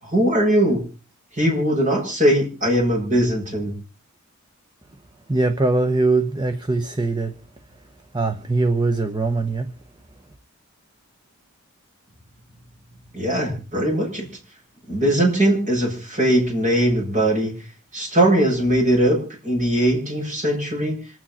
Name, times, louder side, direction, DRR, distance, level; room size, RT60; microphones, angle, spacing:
voice 1, 0.0-0.8 1.3-3.7 13.1-14.3 14.9-17.5 17.9-21.0, right 1 dB, 35° right, 7.4 m, -20 dB
voice 2, 5.3-7.3 8.1-9.7, right 3 dB, 20° right, 0.9 m, -21 dB
26.5 x 9.1 x 4.2 m
head